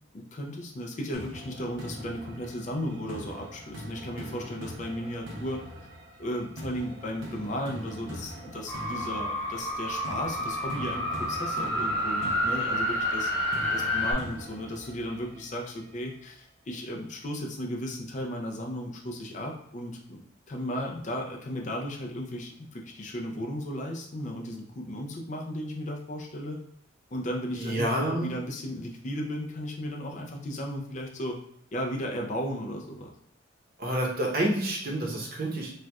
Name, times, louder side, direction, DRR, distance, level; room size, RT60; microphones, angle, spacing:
voice 1, 0.1-5.6 6.2-20.2 20.5-26.6 27.1-31.4 31.7-33.1, equal, 40° left, 0 dB, 0.5 m, -35 dB
sound 1, 1.1-16.1, equal, 80° right, 0.7 m, -43 dB
sound 2, 8.7-14.1, left 1 dB, 10° left, 1.0 m, -29 dB
voice 2, 27.5-28.3 33.8-35.7, right 1 dB, 50° right, -1 dB, 0.9 m, -28 dB
4.2 x 2.4 x 2.3 m, 0.72 s
head